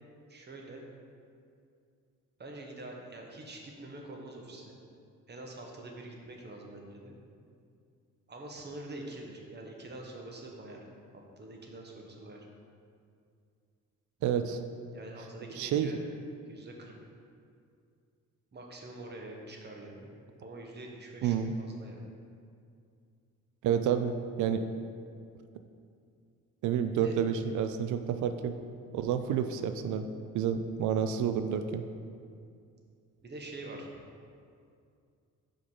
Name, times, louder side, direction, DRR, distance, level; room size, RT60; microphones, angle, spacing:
voice 1, 0.3-0.8 2.4-4.8 5.3-7.2 8.3-10.8 11.1-12.4 14.9-16.0 16.5-17.0 18.5-20.1 20.4-22.0 27.0-27.1 33.2-33.9, right 2 dB, 35° right, 0 dB, 1.2 m, -45 dB
voice 2, 14.2-14.6 15.6-15.9 21.2-21.5 23.6-24.7 26.6-28.5 28.9-30.1 30.3-31.8, right 8 dB, 75° right, 8 dB, 0.5 m, -29 dB
5.1 x 5.1 x 5.5 m, 2.4 s
cardioid pair, 90°, 30 cm